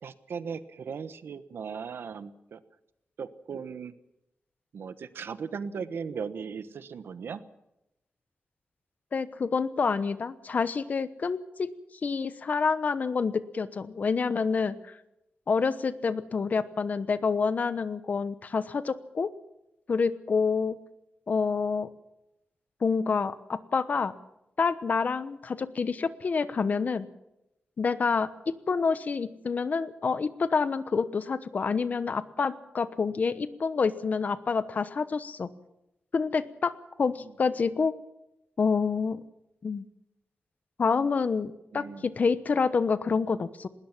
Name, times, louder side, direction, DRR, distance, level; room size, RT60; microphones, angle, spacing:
voice 1, 0.0-2.6 3.2-3.9 4.7-7.4 37.2-37.3 41.7-42.1, right 6 dB, 75° right, 13 dB, 1.2 m, -37 dB
voice 2, 9.1-11.7 12.0-14.9 15.5-19.3 19.9-20.8 21.3-21.9 22.8-24.1 24.6-27.1 27.8-35.5 36.1-36.7 37.0-37.9 38.6-39.2 39.6-39.8 40.8-43.7, left 5 dB, 45° left, 14 dB, 1.0 m, -28 dB
20.0 x 19.5 x 7.3 m, 0.88 s
wide cardioid pair, 175°, 4 cm